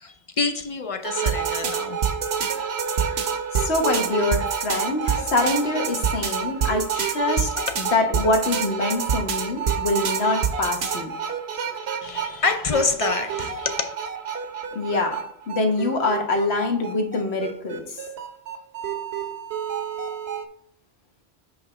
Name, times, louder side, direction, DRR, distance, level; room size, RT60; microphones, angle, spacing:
voice 1, 0.0-2.0 7.6-7.7 12.0-13.9, left 4 dB, 45° left, 8 dB, 0.4 m, -26 dB
sound 1, 1.0-20.4, right 7 dB, 75° right, 1.1 m, -27 dB
voice 2, 3.5-11.1 14.7-18.0, left 2 dB, 80° left, 3 dB, 1.4 m, -25 dB
7.8 x 3.2 x 4.9 m, 0.69 s
omnidirectional pair, 1.1 m